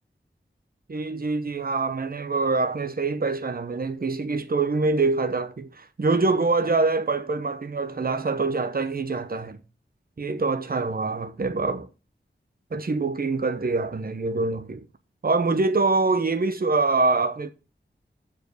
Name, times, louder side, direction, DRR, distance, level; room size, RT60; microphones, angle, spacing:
voice 1, 0.9-9.6 10.2-11.9 12.7-14.8 15.2-17.5, right 3 dB, 50° right, 0.8 m, -25 dB
6.9 x 4.9 x 6.4 m
wide cardioid pair, 60°, 19 cm